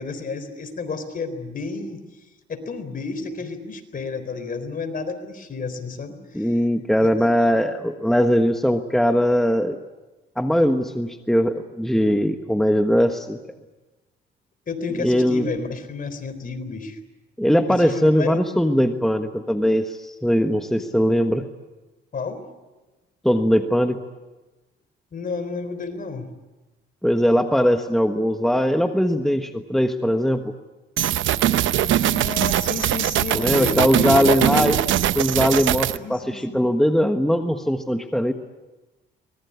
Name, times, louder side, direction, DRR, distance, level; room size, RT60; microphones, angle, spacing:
voice 1, 0.0-2.0 2.5-6.6 7.0-7.5 14.7-17.0 17.7-18.4 22.1-22.5 25.1-26.3 31.8-34.8 36.0-36.7, left 4 dB, 45° left, 9 dB, 3.9 m, -31 dB
voice 2, 6.3-9.8 10.4-13.4 15.0-15.5 17.4-21.5 23.2-24.0 27.0-30.5 33.3-34.8 35.1-38.3, equal, ahead, 6 dB, 1.4 m, -20 dB
sound 1, 31.0-36.0, right 12 dB, 75° right, 0.8 m, -21 dB
24.0 x 20.5 x 9.7 m, 1.1 s
cardioid pair, 90°, 20 cm